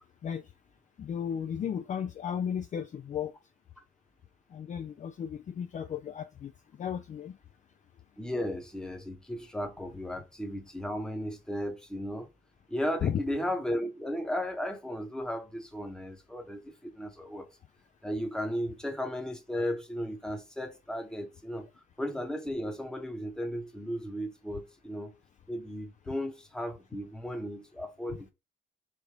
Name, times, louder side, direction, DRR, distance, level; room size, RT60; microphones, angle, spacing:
voice 1, 1.0-3.3 4.5-6.5 6.8-7.4 13.0-13.2, left 8 dB, 40° left, 0.4 m, -34 dB
voice 2, 8.2-12.3 12.7-17.5 18.0-21.7 22.0-25.1 25.5-28.3, equal, 5° left, 0.9 m, -35 dB
3.3 x 2.6 x 4.5 m
cardioid pair, 90°, 20 cm